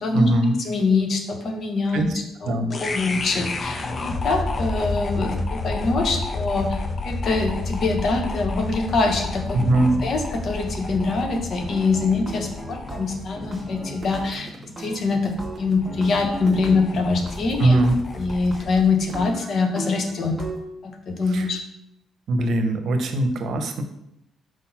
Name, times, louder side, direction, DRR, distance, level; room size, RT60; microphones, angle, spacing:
voice 1, 0.1-0.6 1.9-2.1 2.4-2.7 9.5-10.0 17.6-18.0 21.3-21.5 22.3-23.8, right 1 dB, 65° right, 6 dB, 0.9 m, -20 dB
voice 2, 0.6-2.1 2.4-9.6 10.0-17.8 18.2-20.4 20.8-21.6, left 3 dB, 55° left, 4 dB, 1.1 m, -24 dB
sound 1, 2.7-18.9, left 3 dB, 40° left, 0.6 m, -31 dB
sound 2, 11.7-14.5 14.8-17.4 17.9-18.0 18.5-18.6 19.0-20.6, right 2 dB, 10° right, 1.8 m, -37 dB
sound 3, 13.9-19.2, right 4 dB, 40° right, 1.0 m, -44 dB
4.8 x 4.0 x 5.8 m, 0.79 s
cardioid pair, 90°, 0 cm